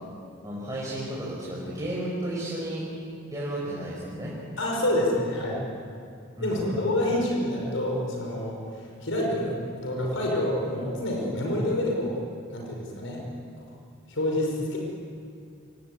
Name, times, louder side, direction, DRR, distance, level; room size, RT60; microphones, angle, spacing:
voice 1, 0.4-2.8 3.3-4.3 6.4-6.8 7.1-7.2, right 1 dB, 20° right, -6 dB, 5.5 m, -33 dB
voice 2, 4.6-5.6 6.4-12.2 12.5-13.2 13.6-13.7 14.1-14.8, left 1 dB, 80° left, -1 dB, 5.5 m, -27 dB
27.5 x 18.5 x 9.6 m, 2.4 s
head